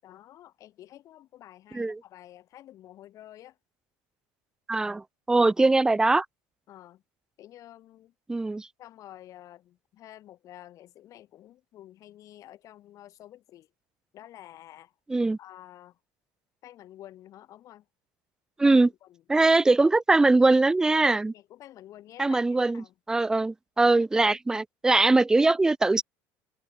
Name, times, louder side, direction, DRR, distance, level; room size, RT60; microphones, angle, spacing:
voice 1, 0.0-3.6 5.3-5.5 6.7-7.0 7.4-8.1 8.8-13.7 14.1-14.9 15.4-16.0 16.6-17.8 18.6-19.2 21.3-22.9, left 13 dB, 50° left, 1.3 m, -49 dB
voice 2, 4.7-6.3 8.3-8.7 15.1-15.4 18.6-18.9 19.3-21.3 22.2-26.0, right 2 dB, 10° right, 0.3 m, -22 dB
supercardioid pair, 110°, 7 cm